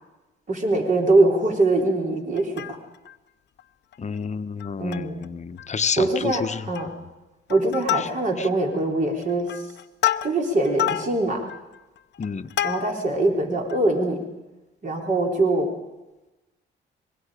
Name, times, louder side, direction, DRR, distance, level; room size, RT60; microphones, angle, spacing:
voice 1, 0.5-2.6 4.8-5.2 6.0-6.9 7.5-9.7 10.2-11.4 12.6-14.2 14.8-15.7, right 2 dB, 40° right, 1 dB, 4.0 m, -22 dB
Plucked string instrument, 2.3-3.2 3.6-3.7 3.9-4.1 4.6-5.3 5.6-5.7 6.0-6.4 6.7-7.1 7.5-8.5 9.1-13.2 13.7-13.8, left 12 dB, 60° left, 0.7 m, -29 dB
voice 2, 4.0-6.6 12.2-12.5, left 6 dB, 35° left, 10 dB, 1.1 m, -29 dB
25.0 x 21.5 x 5.1 m, 1.1 s
cardioid pair, 90°, 20 cm